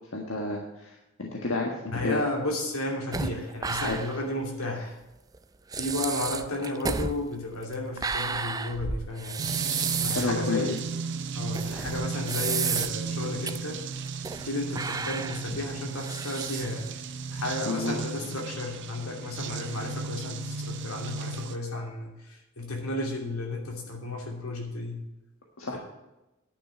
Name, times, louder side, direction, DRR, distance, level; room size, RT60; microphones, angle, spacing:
voice 1, 0.1-2.2 3.8-4.0 10.0-10.7 17.6-17.9 25.6-25.8, left 3 dB, 70° left, 0 dB, 1.5 m, -31 dB
voice 2, 1.9-5.0 5.7-9.5 10.0-10.8 11.3-13.9 14.4-25.0 25.7-25.8, left 2 dB, 85° left, 1 dB, 2.9 m, -33 dB
sound 1, 3.1-4.3 4.6-4.7 5.3-5.4 5.7-10.4 10.8-10.9 11.5-13.1 13.5-13.6 14.0-14.5 14.8-16.9, right 5 dB, 15° right, 0.4 m, -32 dB
sound 2, 9.4-21.6, right 5 dB, 55° right, 0.7 m, -35 dB
10.5 x 6.2 x 8.9 m, 0.98 s
head